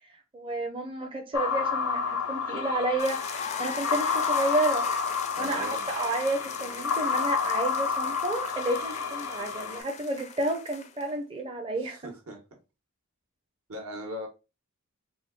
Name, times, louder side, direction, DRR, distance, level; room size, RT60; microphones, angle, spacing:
voice 1, 0.3-3.2 3.6-4.8 5.4-12.0, right 2 dB, 25° right, 0.5 m, -31 dB
sound 1, 1.3-9.8, left 5 dB, 85° left, 0.6 m, -30 dB
sound 2, 3.0-11.1, left 6 dB, 30° left, 0.4 m, -39 dB
voice 2, 5.3-5.9 11.8-12.4 13.7-14.3, equal, 75° right, 1.2 m, -39 dB
3.5 x 2.3 x 3.7 m
head